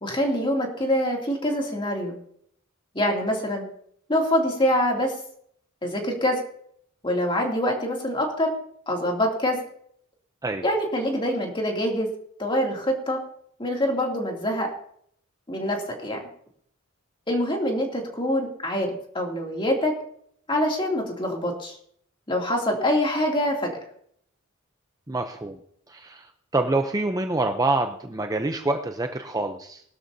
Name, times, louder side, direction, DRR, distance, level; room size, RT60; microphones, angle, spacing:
voice 1, 0.0-2.2 2.9-3.7 4.1-5.1 5.8-6.4 7.0-8.5 8.9-9.6 10.6-12.1 12.4-13.2 13.6-14.7 15.5-16.3 17.3-20.0 20.5-21.8 22.3-23.7, equal, 25° left, 0 dB, 2.6 m, -25 dB
voice 2, 25.1-25.6 25.9-26.3 26.5-29.8, right 2 dB, 15° right, 5 dB, 0.6 m, -26 dB
20.0 x 12.5 x 2.7 m, 0.66 s
head